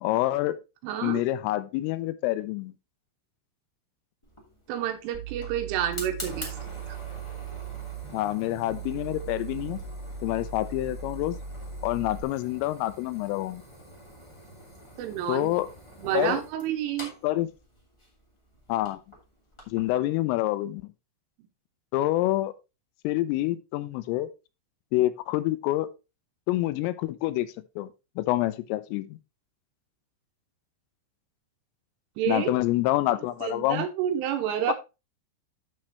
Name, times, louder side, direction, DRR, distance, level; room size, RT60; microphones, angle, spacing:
voice 1, 0.0-0.6 1.0-2.7 8.1-9.8 10.2-11.4 11.8-13.6 15.3-15.7 16.1-16.4 17.2-17.5 18.7-19.0 19.7-20.8 21.9-22.5 23.0-24.3 24.9-25.9 26.5-27.5 27.8-27.9 28.2-29.2 32.3-33.8 34.7-34.8, left 16 dB, 85° left, 3.2 m, -27 dB
voice 2, 0.8-1.3 4.7-6.6 6.9-7.0 15.0-15.5 16.0-17.1 32.2-32.5 33.4-34.7, right 10 dB, 80° right, 3.3 m, -29 dB
Fire, 4.2-19.9, equal, 55° left, 0.3 m, -46 dB
sound 1, 5.1-12.2, right 7 dB, 15° right, 0.6 m, -39 dB
8.9 x 7.4 x 3.0 m
omnidirectional pair, 5.9 m